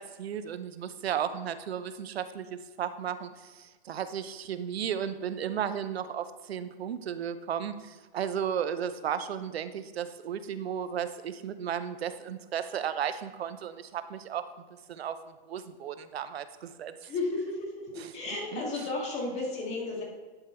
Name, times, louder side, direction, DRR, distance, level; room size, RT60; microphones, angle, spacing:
voice 1, 0.0-14.5 14.9-15.2 15.5-17.1 18.0-18.1 18.5-18.6, right 8 dB, 90° right, 12 dB, 0.7 m, -34 dB
voice 2, 17.0-20.0, left 2 dB, 20° left, -1 dB, 1.8 m, -33 dB
10.5 x 3.9 x 4.3 m, 1.3 s
hypercardioid pair, 150°, 30 cm